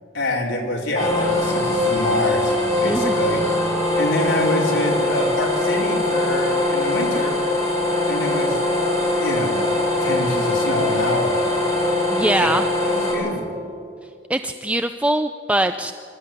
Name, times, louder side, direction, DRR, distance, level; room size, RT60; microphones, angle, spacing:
voice 1, 0.1-2.5 2.8-3.4 4.0-7.4 8.1-8.6 9.2-9.6 10.0-11.4 12.4-12.5 12.8-13.5, left 1 dB, 70° left, -2 dB, 4.7 m, -25 dB
sound 1, 0.9-13.1, left 1 dB, 20° left, 7.0 m, -22 dB
voice 2, 12.1-12.7 14.3-15.9, right 1 dB, 5° right, 8 dB, 0.5 m, -22 dB
26.5 x 13.5 x 9.7 m, 2.3 s
head